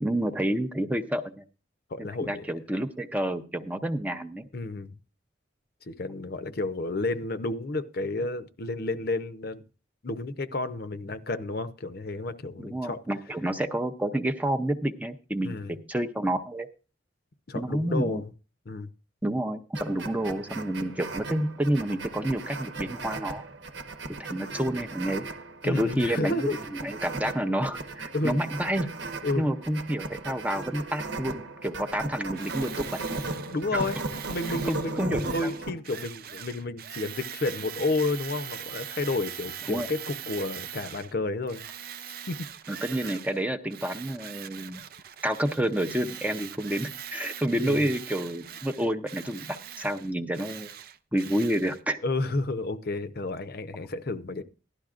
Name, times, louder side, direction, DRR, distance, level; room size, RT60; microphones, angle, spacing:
voice 1, 0.0-1.4 2.0-4.4 12.6-16.7 17.5-18.2 19.2-23.4 24.2-25.3 25.6-26.5 26.8-28.9 29.4-33.0 33.7-33.9 34.6-35.5 39.7-39.9 42.7-44.8 45.2-50.7 51.1-52.0, right 1 dB, 10° right, 0.6 m, -29 dB
voice 2, 1.9-2.5 4.5-5.0 5.9-9.6 10.0-13.0 15.4-15.7 17.5-18.3 18.7-18.9 25.6-26.6 28.1-28.4 29.2-29.5 33.5-34.0 34.3-41.6 42.3-42.4 47.6-47.9 52.0-54.4, left 2 dB, 55° left, 0.7 m, -31 dB
sound 1, 19.7-35.8, right 2 dB, 75° right, 1.1 m, -37 dB
Tools, 32.3-41.1 41.5-43.4 43.7-51.8, right 9 dB, 55° right, 0.5 m, -42 dB
16.0 x 11.5 x 2.5 m
head